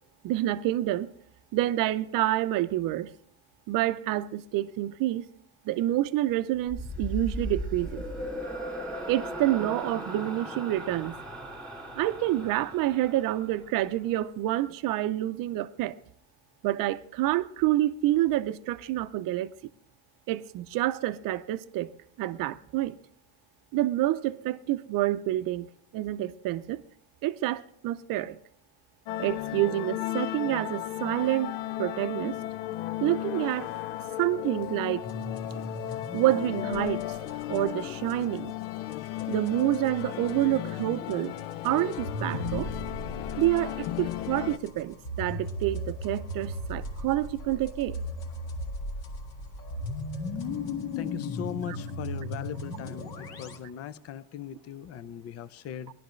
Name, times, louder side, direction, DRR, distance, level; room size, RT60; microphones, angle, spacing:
voice 1, 0.2-1.1 1.5-3.1 3.7-5.3 5.7-8.0 9.1-11.1 12.0-16.0 16.6-19.5 20.3-21.9 22.2-23.0 23.7-25.7 25.9-26.8 27.2-28.4 29.2-32.4 33.0-33.7 34.2-35.1 36.1-37.2 37.5-38.6 39.3-41.4 41.6-42.7 43.4-48.0 51.7-51.8, right 15 dB, 50° right, 0.6 m, -28 dB
sound 1, 6.7-14.1, equal, ahead, 2.0 m, -37 dB
sound 2, 29.1-44.6, left 14 dB, 75° left, 0.7 m, -35 dB
sound 3, 35.0-40.5 40.8-53.6, left 1 dB, 55° left, 1.8 m, -37 dB
voice 2, 51.0-55.9, left 9 dB, 35° left, 0.5 m, -39 dB
17.5 x 11.5 x 3.1 m
cardioid pair, 160°, 43 cm